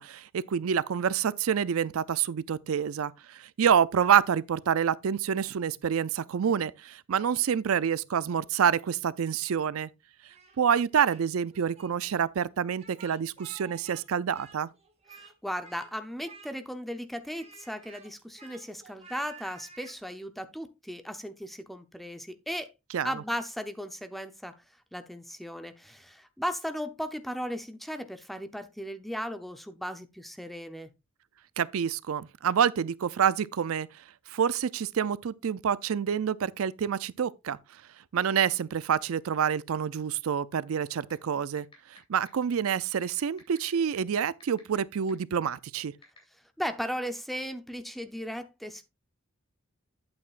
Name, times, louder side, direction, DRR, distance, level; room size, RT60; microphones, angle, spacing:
voice 1, 0.0-9.9 10.6-14.7 22.9-23.2 31.6-33.9 34.3-37.6 38.1-45.9, right 8 dB, 90° right, 0.4 m, -27 dB
Speech, 10.3-11.2 11.5-11.9 12.7-14.0 14.3-15.3 15.6-15.9 16.2-16.8 17.2-20.0, right 5 dB, 30° right, 2.0 m, -51 dB
voice 2, 15.1-22.7 23.0-24.5 24.9-30.9 46.6-48.9, equal, ahead, 0.7 m, -36 dB
sound 1, 41.1-41.2 41.6-42.0 42.3-42.4 43.0-44.8 45.1-45.2 46.0-46.2, left 4 dB, 25° left, 3.3 m, -51 dB
9.5 x 8.6 x 2.5 m
head